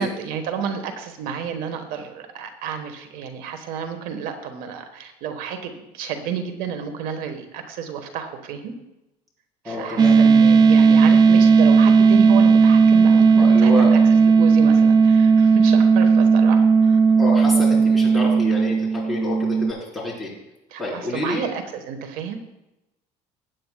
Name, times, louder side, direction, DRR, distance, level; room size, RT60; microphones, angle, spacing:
voice 1, 0.0-8.7 9.6-17.0 20.7-22.4, right 7 dB, 75° right, 7 dB, 1.3 m, -31 dB
voice 2, 9.6-10.2 13.4-13.9 17.2-20.3 20.8-21.4, left 1 dB, ahead, -4 dB, 4.0 m, -28 dB
sound 1, 10.0-19.7, right 5 dB, 30° right, 0.3 m, -15 dB
15.5 x 9.4 x 2.3 m, 0.94 s
cardioid pair, 130°, 15 cm